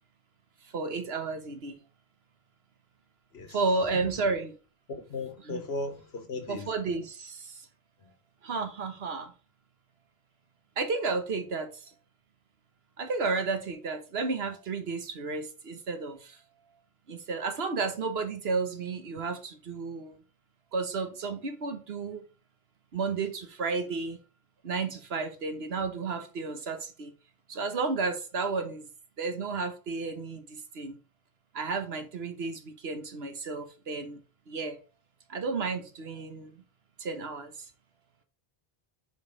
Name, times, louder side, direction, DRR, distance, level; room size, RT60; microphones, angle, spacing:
voice 1, 0.7-1.8 3.5-4.6 5.4-5.6 6.5-7.5 8.4-9.3 10.8-11.8 13.0-16.3 17.1-20.2 20.7-22.2 22.9-24.2 24.6-27.1 27.5-28.9 29.2-31.0 31.5-34.2 34.5-34.8 35.3-36.5 37.0-37.5, right 4 dB, 80° right, 1.4 m, -32 dB
voice 2, 4.9-6.7, left 2 dB, 85° left, 1.4 m, -36 dB
5.4 x 4.8 x 4.5 m
omnidirectional pair, 1.0 m